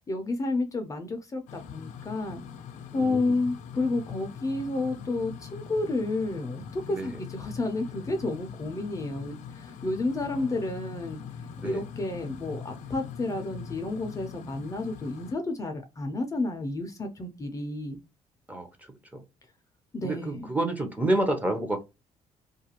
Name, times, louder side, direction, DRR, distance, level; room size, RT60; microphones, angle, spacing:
voice 1, 0.0-2.4 2.9-11.2 11.6-18.0 19.9-20.5, left 2 dB, 25° left, 0.5 m, -31 dB
sound 1, 1.5-15.3, left 7 dB, 80° left, 0.4 m, -42 dB
voice 2, 2.9-3.4 6.9-7.1 11.6-11.8 18.5-19.2 20.0-21.8, right 1 dB, 10° right, 0.7 m, -29 dB
2.4 x 2.2 x 2.8 m
cardioid pair, 125°, 13 cm